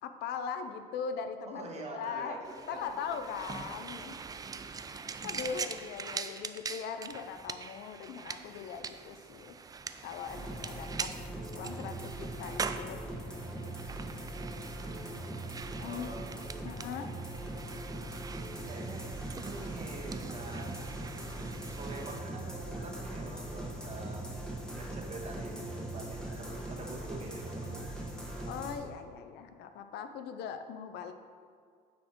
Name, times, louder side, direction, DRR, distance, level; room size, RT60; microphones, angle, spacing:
voice 1, 0.0-2.4 2.7-4.2 4.9-9.7 10.0-11.1 11.5-13.0 15.8-16.1 16.6-17.2 17.7-18.1 28.5-31.1, left 6 dB, 80° left, 8 dB, 0.6 m, -40 dB
voice 2, 1.5-3.3 4.3-4.6 5.1-5.5 8.3-8.6 15.8-16.3 18.7-20.7 21.7-27.8, right 3 dB, 40° right, 1 dB, 1.4 m, -46 dB
sound 1, 2.4-22.2, right 5 dB, 20° right, 0.3 m, -43 dB
sound 2, 10.3-28.7, right 1 dB, 5° left, 1.4 m, -40 dB
9.3 x 4.4 x 4.5 m, 2.1 s
cardioid pair, 110°, 17 cm